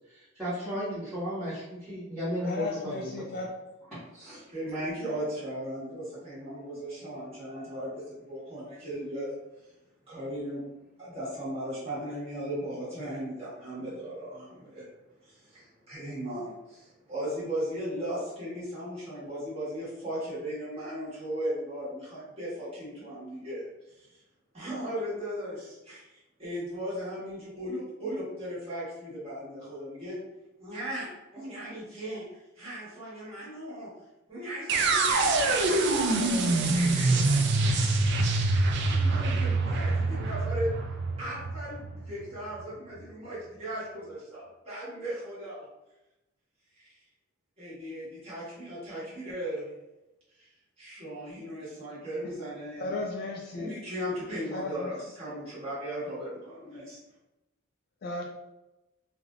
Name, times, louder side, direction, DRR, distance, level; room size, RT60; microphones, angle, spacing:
voice 1, 0.3-3.1 3.9-4.4, equal, ahead, -15 dB, 1.2 m, -34 dB
voice 2, 2.4-3.5 52.8-53.7 54.5-54.9 58.0-58.2, left 2 dB, 50° left, -1 dB, 0.3 m, -35 dB
voice 3, 4.5-9.3 10.1-14.8 15.2-24.2 24.5-30.2 30.6-31.1 31.3-33.9 34.3-37.9 38.7-40.7 41.2-45.6 46.8-46.9 47.6-49.7 50.3-50.5 50.8-52.9 53.5-57.0, equal, 30° right, -10 dB, 1.4 m, -37 dB
sound 1, 34.7-42.6, right 3 dB, 55° right, 0.3 m, -25 dB
3.2 x 2.6 x 2.4 m, 0.98 s
head